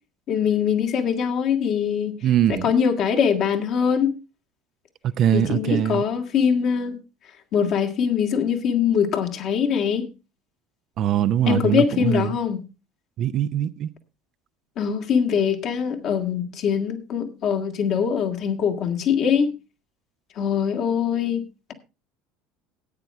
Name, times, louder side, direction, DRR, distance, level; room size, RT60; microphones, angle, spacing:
voice 1, 0.3-2.1 2.5-4.1 5.3-7.0 7.5-10.1 11.5-12.7 14.8-19.5 20.4-21.4, left 7 dB, 50° left, 2.0 m, -22 dB
voice 2, 2.2-2.7 5.0-6.0 11.0-12.4 13.2-13.9, right 10 dB, 50° right, 0.7 m, -22 dB
14.5 x 9.2 x 3.5 m
hypercardioid pair, 70°, 0 cm